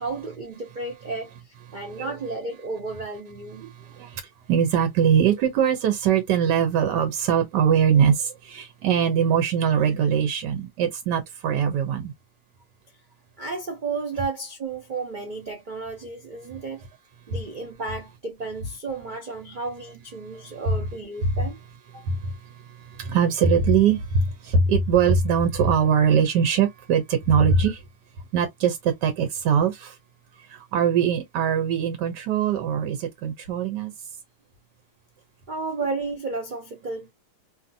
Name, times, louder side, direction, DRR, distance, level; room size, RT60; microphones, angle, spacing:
voice 1, 0.0-3.6 13.4-16.8 17.3-21.6 21.9-22.0 35.5-37.1, right 3 dB, 70° right, 0.4 m, -33 dB
voice 2, 3.6-4.2 4.5-12.1 20.3-20.4 21.2-21.3 22.0-22.4 22.9-27.8 28.3-29.9 30.5-33.9, right 7 dB, 90° right, 1.3 m, -22 dB
2.8 x 2.6 x 2.5 m
omnidirectional pair, 1.8 m